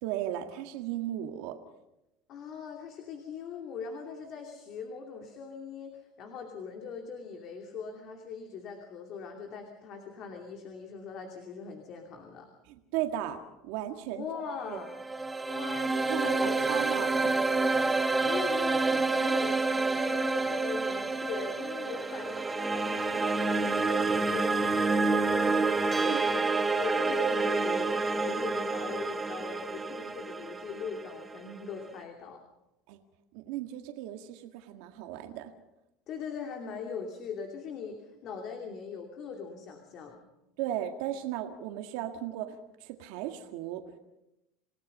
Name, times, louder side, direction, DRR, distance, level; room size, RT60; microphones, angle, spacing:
voice 1, 0.0-1.6 12.7-13.4 13.6-14.2 14.7-14.8 16.1-17.4 26.1-26.3 32.9-33.0 33.3-35.5 40.6-44.0, right 12 dB, 75° right, 5 dB, 1.8 m, -36 dB
voice 2, 2.3-12.5 14.1-14.9 15.5-32.4 36.1-40.2, left 5 dB, 50° left, 3 dB, 2.7 m, -41 dB
sound 1, 14.7-31.8, right 3 dB, 15° right, 1.3 m, -28 dB
Bell, 25.9-27.5, right 1 dB, 5° left, 3.0 m, -42 dB
28.5 x 17.5 x 5.5 m, 0.91 s
supercardioid pair, 135°, 0 cm